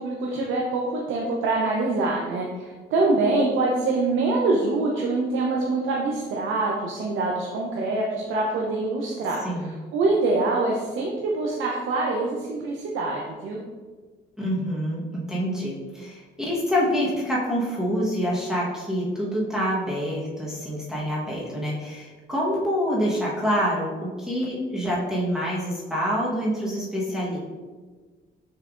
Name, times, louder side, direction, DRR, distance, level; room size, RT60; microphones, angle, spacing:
voice 1, 0.0-9.4 9.9-13.6, right 3 dB, 85° right, -2 dB, 0.7 m, -25 dB
voice 2, 9.4-9.7 14.4-27.4, equal, 5° right, -7 dB, 1.2 m, -26 dB
6.5 x 3.3 x 2.5 m, 1.4 s
cardioid pair, 90°, 20 cm